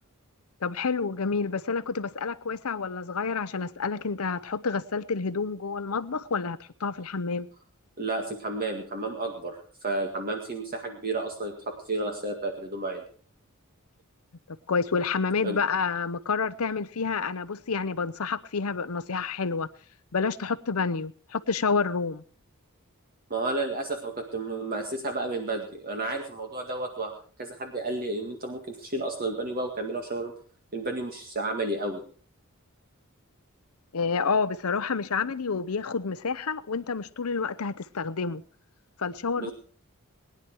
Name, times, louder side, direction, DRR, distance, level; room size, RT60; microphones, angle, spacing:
voice 1, 0.6-7.5 14.5-19.7 20.1-22.2 33.9-38.4 39.0-39.5, left 5 dB, 85° left, 0.8 m, -29 dB
voice 2, 8.0-13.0 15.4-15.6 23.3-27.1 27.4-30.3 30.7-32.0 39.4-39.5, right 2 dB, 45° right, 2.0 m, -32 dB
21.0 x 10.5 x 4.7 m
head